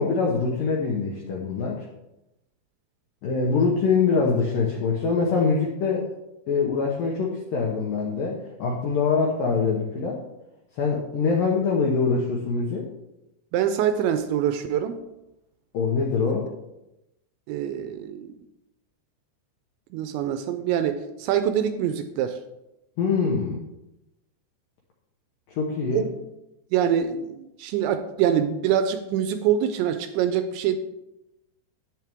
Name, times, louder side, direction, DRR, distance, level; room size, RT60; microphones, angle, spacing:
voice 1, 0.0-1.9 3.2-6.1 6.5-10.2 10.8-12.9 15.7-16.5 23.0-23.6 25.5-26.1, left 4 dB, 90° left, -1 dB, 1.9 m, -24 dB
voice 2, 13.5-15.0 17.5-18.3 19.9-22.4 25.9-26.1 26.7-30.8, right 9 dB, 80° right, 9 dB, 2.7 m, -25 dB
10.5 x 9.2 x 3.6 m, 0.92 s
omnidirectional pair, 5.6 m